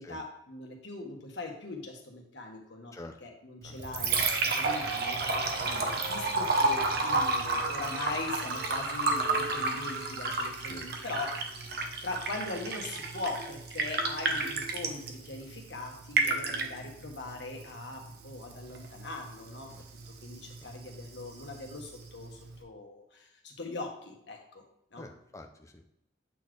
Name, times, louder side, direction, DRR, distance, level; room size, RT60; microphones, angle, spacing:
voice 1, 0.0-11.5 12.0-19.7 20.1-24.6 24.9-25.1, left 2 dB, 70° left, 1 dB, 1.4 m, -41 dB
Liquid, 3.6-22.6, right 3 dB, 55° right, 0.8 m, -32 dB
voice 2, 25.0-25.9, left 2 dB, 15° left, 4 dB, 0.5 m, -47 dB
8.3 x 4.2 x 3.2 m, 0.79 s
head